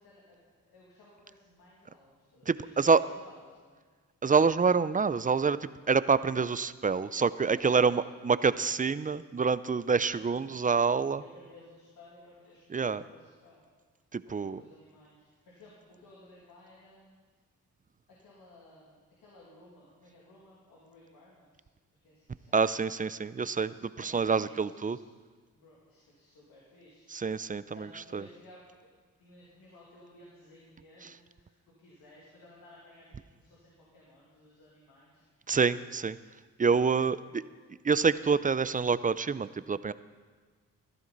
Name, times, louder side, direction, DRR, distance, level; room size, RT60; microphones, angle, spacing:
voice 1, 0.0-3.8 7.5-7.9 10.0-10.7 11.1-13.6 14.2-17.2 18.1-21.7 22.0-22.6 23.9-25.0 25.5-27.1 27.7-28.9 29.2-35.3 37.2-37.5, left 1 dB, 85° left, -6 dB, 2.6 m, -56 dB
voice 2, 2.5-3.0 4.2-11.2 12.7-13.0 14.1-14.6 22.5-25.0 27.1-27.9 28.1-28.2 35.5-36.2 36.6-37.2 37.8-39.9, right 5 dB, 25° right, 16 dB, 0.5 m, -27 dB
15.5 x 12.5 x 4.0 m, 1.5 s
cardioid pair, 55°, 34 cm